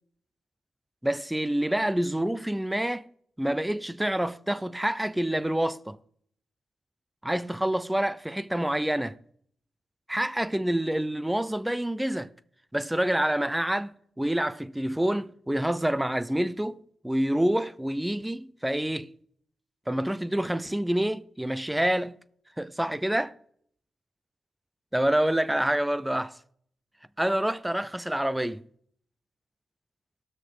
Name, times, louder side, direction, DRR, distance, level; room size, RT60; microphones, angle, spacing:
voice 1, 1.0-3.1 3.4-6.0 7.2-9.2 10.1-12.3 12.7-19.1 19.9-22.2 22.6-23.3 24.9-26.3 27.2-28.6, right 1 dB, 10° right, 0.7 m, -27 dB
19.0 x 6.5 x 3.5 m
supercardioid pair, 45°, 0 cm